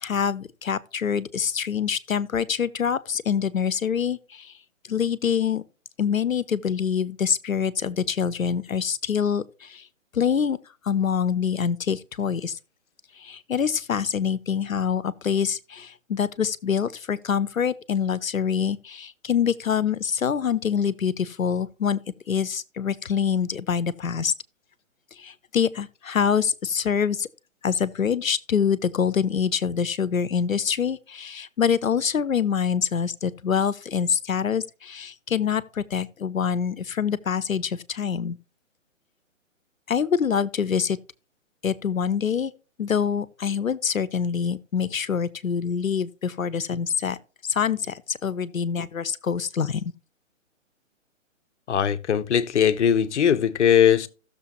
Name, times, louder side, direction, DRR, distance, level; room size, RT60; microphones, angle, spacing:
voice 1, 0.0-4.5 4.9-5.6 6.0-9.8 10.1-10.6 10.9-12.6 13.2-22.0 22.3-24.3 25.2-27.3 27.6-38.4 39.9-41.0 41.6-42.5 42.8-47.2 47.5-49.8, left 7 dB, 90° left, 0.8 m, -25 dB
voice 2, 51.7-54.1, left 8 dB, 60° left, 0.9 m, -20 dB
15.5 x 6.8 x 2.9 m
figure-of-eight pair, 135°, 39 cm